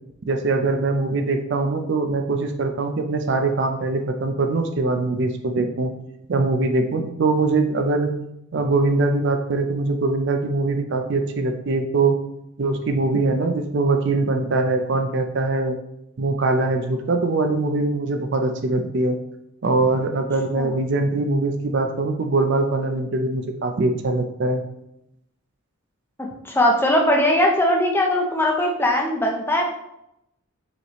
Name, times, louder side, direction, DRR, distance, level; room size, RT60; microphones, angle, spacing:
voice 1, 0.2-5.9 6.3-8.1 8.5-12.2 12.6-15.8 16.2-19.2 19.6-24.6, right 3 dB, 55° right, 6 dB, 0.4 m, -22 dB
voice 2, 26.4-29.6, left 1 dB, 10° left, 0 dB, 0.5 m, -20 dB
4.9 x 3.3 x 3.0 m, 0.82 s
head